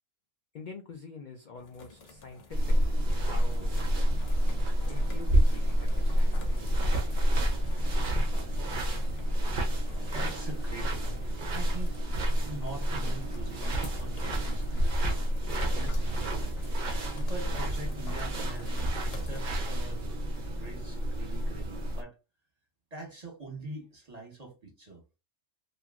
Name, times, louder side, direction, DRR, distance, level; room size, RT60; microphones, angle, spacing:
voice 1, 0.5-2.8 3.1-3.8 4.9-7.1 7.8-8.2, left 4 dB, 80° left, 0.4 m, -46 dB
sound 1, 1.5-19.4, left 3 dB, 55° left, 0.9 m, -50 dB
sound 2, 2.5-22.0, equal, 50° right, 0.7 m, -29 dB
voice 2, 10.1-12.0 12.4-16.5 17.1-20.2 20.5-22.1 22.9-25.0, right 3 dB, 30° right, 1.0 m, -44 dB
2.9 x 2.6 x 2.4 m
omnidirectional pair, 1.4 m